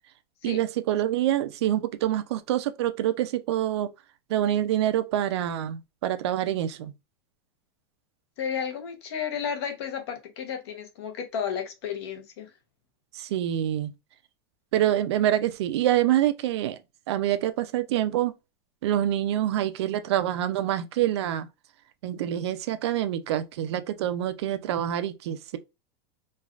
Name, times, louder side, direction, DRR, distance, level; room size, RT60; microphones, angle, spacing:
voice 1, 0.4-3.9 4.3-6.9 13.1-13.9 14.7-16.8 17.1-18.3 18.8-21.5 22.0-25.6, right 12 dB, 70° right, 0.4 m, -26 dB
voice 2, 8.4-12.5, left 7 dB, 65° left, 0.9 m, -32 dB
3.2 x 2.3 x 2.4 m
supercardioid pair, 165°, 14 cm